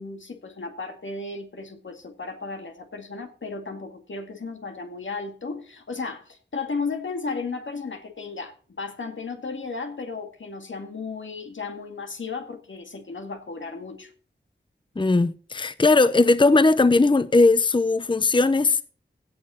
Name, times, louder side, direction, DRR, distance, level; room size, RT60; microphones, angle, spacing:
voice 1, 0.0-14.1, left 4 dB, 85° left, 2.1 m, -34 dB
voice 2, 15.0-18.8, left 3 dB, 25° left, 0.6 m, -19 dB
16.5 x 6.6 x 4.3 m
wide cardioid pair, 50°, 19 cm